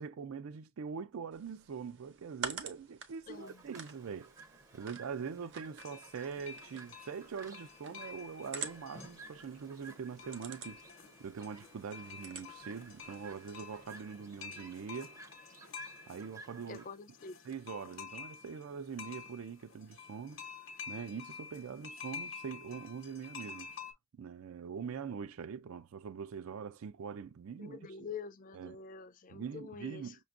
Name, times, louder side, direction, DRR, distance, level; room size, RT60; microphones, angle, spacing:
voice 1, 0.0-4.3 4.7-10.8 11.2-15.2 16.1-16.8 17.4-20.4 20.9-23.7 24.2-27.8 28.5-28.8 29.3-30.2, right 6 dB, 85° right, 0.4 m, -43 dB
sound 1, 1.3-13.8, right 5 dB, 55° right, 0.7 m, -49 dB
voice 2, 3.3-3.7 16.7-17.4 27.6-30.2, left 5 dB, 40° left, 0.4 m, -46 dB
Chirp tweet, 3.3-16.9, right 3 dB, 15° right, 0.5 m, -56 dB
sound 2, 5.8-23.9, left 6 dB, 65° left, 0.8 m, -50 dB
5.8 x 2.2 x 2.4 m
head